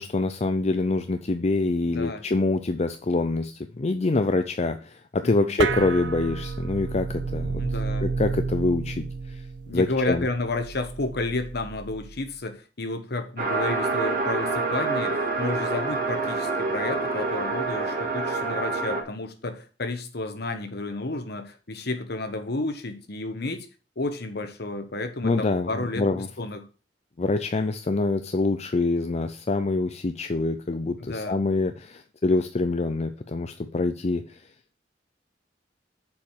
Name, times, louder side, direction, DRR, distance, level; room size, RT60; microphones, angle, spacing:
voice 1, 0.0-7.6 8.0-9.4 9.7-10.3 25.2-26.3 27.2-34.4, left 3 dB, 35° left, 0.5 m, -25 dB
voice 2, 1.9-2.2 5.2-5.5 7.6-8.0 9.7-23.7 24.0-26.6 31.0-31.4, left 2 dB, 60° left, 1.2 m, -31 dB
sound 1, 5.6-12.3, right 4 dB, 70° right, 0.6 m, -31 dB
sound 2, 13.4-19.0, right 3 dB, 50° right, 2.2 m, -27 dB
7.1 x 4.9 x 6.3 m
head